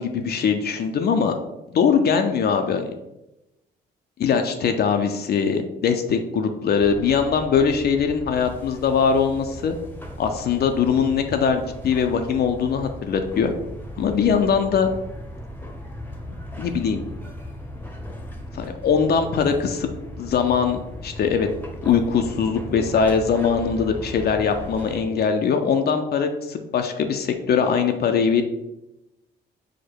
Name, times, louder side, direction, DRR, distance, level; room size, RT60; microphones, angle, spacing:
voice 1, 0.0-1.3 1.7-2.9 4.2-9.8 10.2-13.5 14.0-14.9 16.6-17.0 18.5-19.9 20.2-21.5 21.8-28.4, left 6 dB, 55° left, 6 dB, 0.5 m, -21 dB
sound 1, 6.8-25.0, left 1 dB, 10° left, 0.7 m, -37 dB
4.8 x 2.1 x 4.5 m, 0.93 s
cardioid pair, 90°, 20 cm